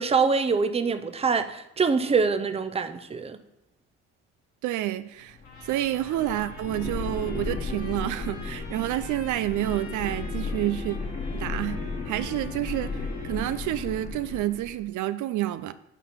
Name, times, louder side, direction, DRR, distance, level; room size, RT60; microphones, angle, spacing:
voice 1, 0.0-3.4, right 5 dB, 20° right, 0.6 m, -24 dB
voice 2, 4.6-5.4 5.6-11.0 11.3-15.7, right 14 dB, 80° right, 0.5 m, -29 dB
sound 1, 5.2-14.8, left 4 dB, 25° left, 1.2 m, -35 dB
Trumpet, 5.4-14.0, left 3 dB, 70° left, 2.1 m, -48 dB
7.3 x 4.2 x 5.5 m
cardioid pair, 90°, 30 cm